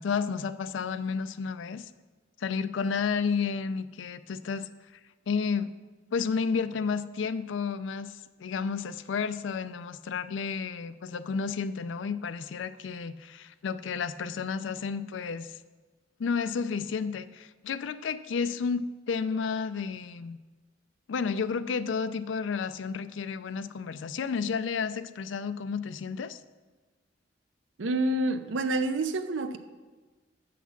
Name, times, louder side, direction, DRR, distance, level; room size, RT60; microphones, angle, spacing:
voice 1, 0.0-1.9 2.4-4.7 5.3-5.7 6.1-15.6 16.2-20.4 21.1-26.4, left 5 dB, 75° left, 13 dB, 0.4 m, -31 dB
voice 2, 27.8-29.6, right 2 dB, 85° right, 9 dB, 0.6 m, -28 dB
7.1 x 5.9 x 7.2 m, 1.3 s
head